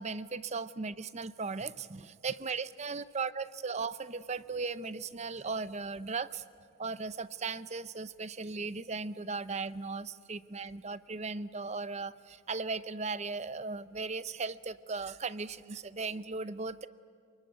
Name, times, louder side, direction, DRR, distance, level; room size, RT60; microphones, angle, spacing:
voice 1, 0.0-6.4 6.8-16.9, right 4 dB, 35° right, 15 dB, 0.6 m, -37 dB
28.0 x 21.0 x 9.6 m, 2.3 s
head